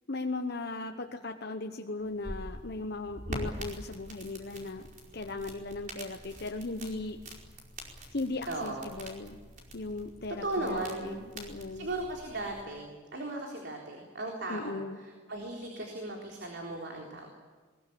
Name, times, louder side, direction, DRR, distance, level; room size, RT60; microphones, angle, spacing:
voice 1, 0.1-4.9 5.1-7.2 8.1-9.4 9.7-11.9 14.5-15.0, left 2 dB, 55° left, 5 dB, 1.1 m, -37 dB
sound 1, 2.0-12.6, right 1 dB, 40° right, 4.9 m, -45 dB
voice 2, 8.5-8.9 10.4-11.1 11.7-17.3, right 2 dB, 60° right, 0 dB, 3.8 m, -37 dB
21.5 x 21.5 x 8.7 m, 1.4 s
head